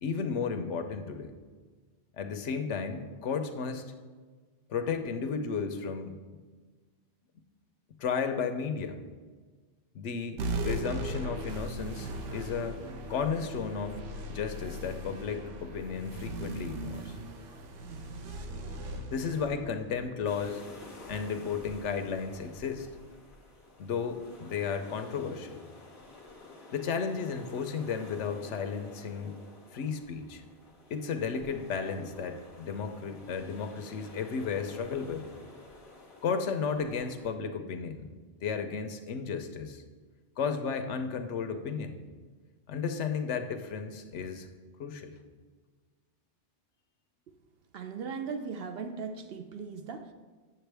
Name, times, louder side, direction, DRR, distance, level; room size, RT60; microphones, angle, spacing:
voice 1, 0.0-1.3 2.2-3.9 4.7-6.2 8.0-9.0 9.9-12.8 13.1-14.0 14.3-17.2 19.1-20.6 21.1-22.9 23.8-25.6 26.7-29.3 29.7-30.4 30.9-35.3 36.2-38.1 38.4-39.8 40.4-42.0 42.7-44.5 44.8-45.1, left 6 dB, 80° left, 7 dB, 1.0 m, -33 dB
sound 1, 10.4-21.2, right 1 dB, 90° right, 1.1 m, -38 dB
sound 2, 20.2-37.3, left 2 dB, 45° left, 1.3 m, -51 dB
voice 2, 47.7-50.1, right 5 dB, 65° right, 7 dB, 0.7 m, -38 dB
8.8 x 6.9 x 3.4 m, 1.4 s
omnidirectional pair, 1.2 m